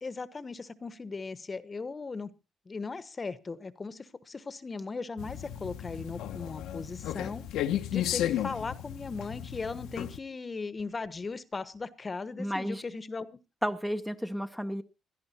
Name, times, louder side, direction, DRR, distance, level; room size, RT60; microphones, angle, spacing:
voice 1, 0.0-2.3 2.7-7.4 7.9-13.3, left 4 dB, 30° left, 15 dB, 1.1 m, -38 dB
sound 1, 5.2-10.2, left 11 dB, 85° left, 1.0 m, -34 dB
voice 2, 12.4-12.8 13.6-14.8, equal, 5° right, 9 dB, 0.9 m, -32 dB
16.5 x 11.5 x 4.3 m, 0.31 s
cardioid pair, 90°, 0 cm